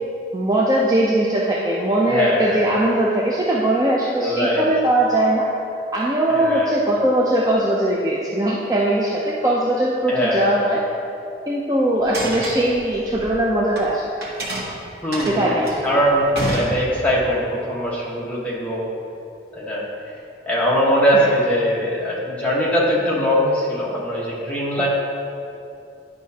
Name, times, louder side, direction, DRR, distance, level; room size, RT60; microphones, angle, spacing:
voice 1, 0.3-5.5 5.9-10.8 11.5-14.1 15.2-16.0 21.1-21.3 24.8-24.9, right 1 dB, 20° right, -4 dB, 0.5 m, -20 dB
voice 2, 2.1-2.6 4.1-4.6 6.4-6.7 10.1-10.5 15.0-18.9 19.5-19.8 20.5-24.9, equal, 10° left, -6 dB, 1.2 m, -21 dB
sound 1, 12.0-13.9 14.2-17.3, right 1 dB, 65° right, 1.3 m, -28 dB
10.0 x 5.3 x 2.8 m, 2.6 s
head